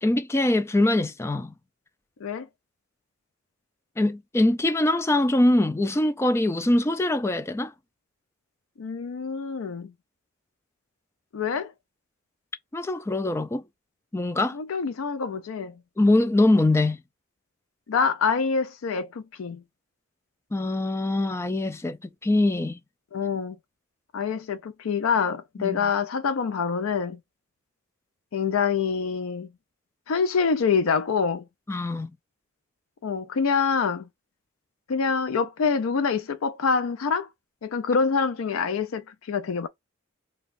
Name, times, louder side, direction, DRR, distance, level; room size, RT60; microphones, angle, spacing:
voice 1, 0.0-1.5 4.0-7.7 12.7-13.6 14.1-14.6 16.0-17.0 20.5-22.0 22.2-22.8 25.6-25.9 31.7-32.1, left 1 dB, 15° left, 0.3 m, -23 dB
voice 2, 8.8-9.9 11.3-11.7 14.5-15.7 17.9-19.6 23.1-23.6 24.1-27.2 28.3-29.5 30.1-31.4 33.0-34.1 34.9-37.3 37.6-39.7, left 5 dB, 90° left, 0.4 m, -26 dB
5.1 x 2.3 x 2.5 m
head